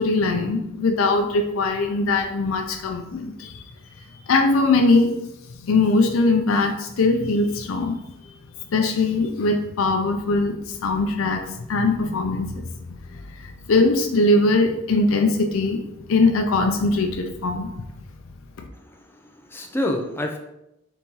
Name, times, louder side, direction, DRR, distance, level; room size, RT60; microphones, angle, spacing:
voice 1, 0.0-3.7 4.3-5.2 5.5-8.3 8.7-12.7 13.1-15.8 16.1-17.7, left 3 dB, 80° left, 4 dB, 0.5 m, -21 dB
voice 2, 18.8-20.4, left 1 dB, 10° left, 2 dB, 0.5 m, -28 dB
4.0 x 3.0 x 3.6 m, 0.86 s
head